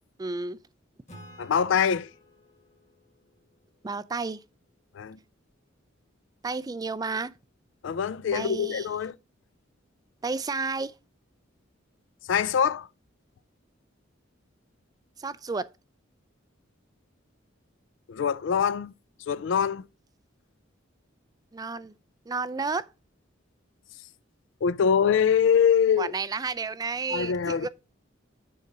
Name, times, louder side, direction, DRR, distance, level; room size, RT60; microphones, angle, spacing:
voice 1, 0.2-0.6 3.8-4.4 6.4-7.3 8.3-8.9 10.2-11.0 15.2-15.7 21.5-21.9 22.3-22.9 26.0-27.7, right 4 dB, 20° right, 0.3 m, -31 dB
Acoustic guitar / Strum, 1.1-4.5, equal, 35° left, 1.7 m, -53 dB
voice 2, 1.4-2.1 4.9-5.2 7.8-9.2 12.3-12.9 18.1-18.9 19.3-19.8 24.6-26.1 27.1-27.7, left 7 dB, 65° left, 0.4 m, -24 dB
6.6 x 4.8 x 5.3 m
head